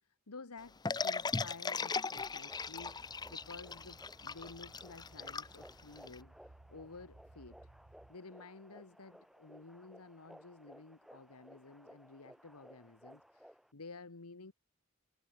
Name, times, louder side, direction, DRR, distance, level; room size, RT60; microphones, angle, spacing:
voice 1, 0.0-7.7 8.1-14.5, left 3 dB, 85° left, 1.4 m, -53 dB
sound 1, 0.8-6.2, left 4 dB, 20° left, 0.5 m, -38 dB
sound 2, 1.5-13.7, equal, ahead, 4.3 m, -59 dB
sound 3, 2.5-8.1, right 2 dB, 45° right, 1.0 m, -61 dB
head